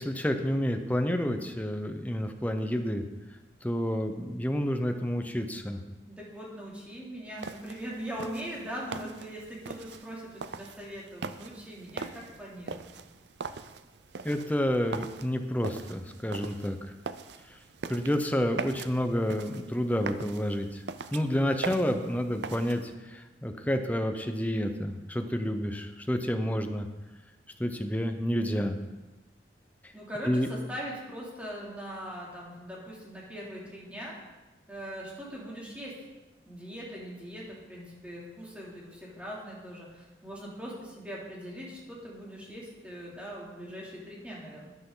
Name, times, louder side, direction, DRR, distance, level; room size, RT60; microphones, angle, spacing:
voice 1, 0.0-3.0 3.6-5.8 14.2-16.8 17.5-17.6 17.9-20.8 21.1-26.9 27.6-28.8 29.8-29.9 30.2-30.5, equal, 10° left, 6 dB, 0.8 m, -29 dB
voice 2, 6.1-12.9 29.9-34.2 34.7-36.0 36.5-44.7, equal, 5° right, -5 dB, 2.9 m, -41 dB
sound 1, 7.4-22.9, right 4 dB, 70° right, 0.5 m, -42 dB
12.5 x 10.5 x 3.9 m, 1.1 s
head